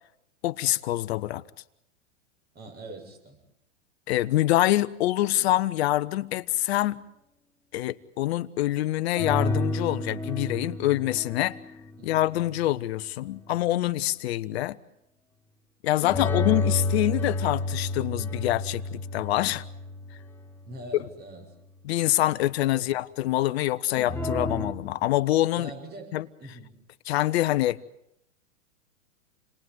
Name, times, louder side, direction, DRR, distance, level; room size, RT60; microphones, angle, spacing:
voice 1, 0.4-1.4 4.1-7.0 7.7-11.6 12.0-14.8 15.8-19.6 21.8-25.7 26.1-26.3 27.1-27.8, left 15 dB, 55° left, 1.2 m, -25 dB
voice 2, 2.5-3.4 12.0-12.3 16.2-16.5 20.7-21.5 22.8-22.9 25.5-26.8, right 2 dB, 25° right, 7.6 m, -43 dB
sound 1, 9.2-12.6 16.0-20.6 24.0-24.7, left 2 dB, 5° left, 3.1 m, -30 dB
30.0 x 20.5 x 9.4 m
hypercardioid pair, 115°, 38 cm